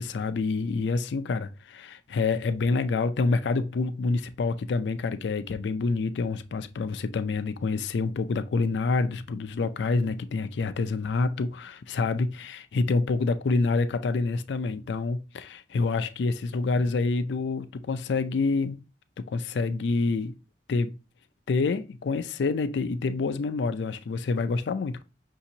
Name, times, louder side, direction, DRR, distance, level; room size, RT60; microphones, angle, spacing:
voice 1, 0.0-18.8 19.2-20.3 20.7-20.9 21.5-25.0, left 3 dB, 75° left, 0.4 m, -27 dB
5.8 x 2.8 x 2.7 m
head